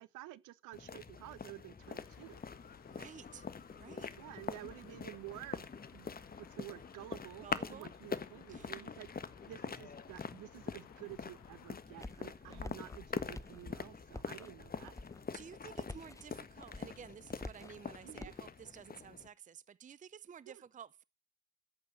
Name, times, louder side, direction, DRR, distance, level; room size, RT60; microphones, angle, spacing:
voice 1, 0.0-2.4 4.2-5.7 5.9-9.1 9.5-15.0 18.0-18.3 20.5-20.6, right 16 dB, 65° right, 1.2 m, -51 dB
sound 1, 0.7-19.3, left 5 dB, 25° left, 1.4 m, -45 dB
sound 2, 1.8-11.8, left 11 dB, 65° left, 1.8 m, -62 dB
voice 2, 2.9-3.5 3.8-4.1 7.4-7.9 8.5-8.7 15.3-21.0, right 8 dB, 25° right, 0.7 m, -52 dB
sound 3, 11.3-18.5, left 2 dB, 10° left, 0.9 m, -50 dB
14.0 x 8.5 x 7.6 m
hypercardioid pair, 60°, 33 cm